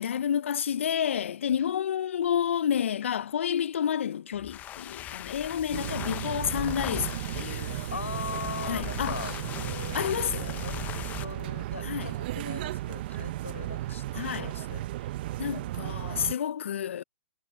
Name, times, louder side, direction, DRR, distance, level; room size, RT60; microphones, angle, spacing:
voice 1, 0.0-7.7 8.7-9.2 9.9-10.6 11.8-12.1 14.1-14.5 15.4-17.0, left 9 dB, 70° left, 0.6 m, -30 dB
sound 1, 4.3-11.3, left 12 dB, 25° left, 0.9 m, -39 dB
sound 2, 5.7-16.3, right 15 dB, 50° right, 0.8 m, -35 dB
voice 2, 7.9-10.8 11.2-14.0 14.3-14.8, left 5 dB, 90° left, 5.0 m, -40 dB
hypercardioid pair, 130°, 7 cm